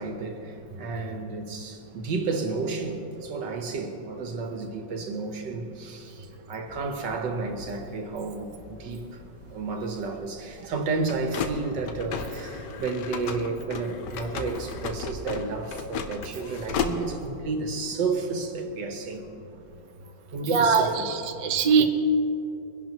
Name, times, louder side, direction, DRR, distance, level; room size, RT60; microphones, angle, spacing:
voice 1, 0.0-9.2 9.5-19.3 20.0-21.1 21.8-21.9, right 4 dB, 85° right, 4 dB, 1.9 m, -32 dB
sound 1, 6.7-17.4, left 5 dB, 80° left, 1.4 m, -36 dB
voice 2, 20.4-21.8, right 5 dB, 45° right, 4 dB, 0.4 m, -22 dB
22.5 x 11.0 x 3.1 m, 2.9 s
omnidirectional pair, 1.9 m